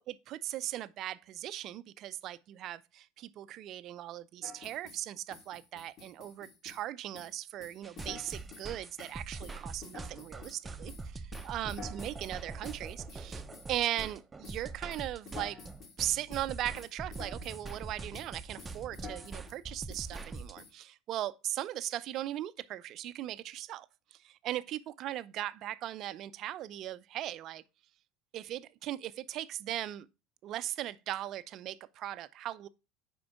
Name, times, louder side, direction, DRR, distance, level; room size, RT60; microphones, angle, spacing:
voice 1, 0.0-13.4 13.7-15.6 16.0-23.9 24.2-27.6 28.3-30.1 30.4-32.7, right 13 dB, 50° right, 0.6 m, -38 dB
sound 1, 4.4-5.0 5.3-6.9 7.1-7.3 7.6-8.7 9.0-10.6 10.9-14.1 14.4-14.6 14.9-16.0 16.3-16.5 16.7-17.8 18.1-18.3 18.6-19.6 19.9-20.7, left 5 dB, 45° left, 2.1 m, -50 dB
sound 2, 7.8-20.5, right 3 dB, 20° right, 0.8 m, -44 dB
8.5 x 5.3 x 3.5 m
figure-of-eight pair, 65°, 0 cm